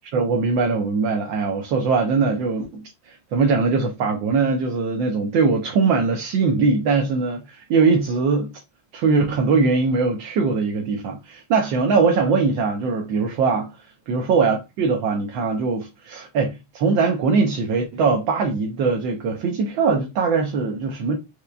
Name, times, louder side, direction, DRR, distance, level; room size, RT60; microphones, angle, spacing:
voice 1, 0.1-8.5 8.9-13.7 14.1-21.2, right 4 dB, 55° right, 0.7 m, -21 dB
3.0 x 2.2 x 2.4 m
supercardioid pair, 120°, 41 cm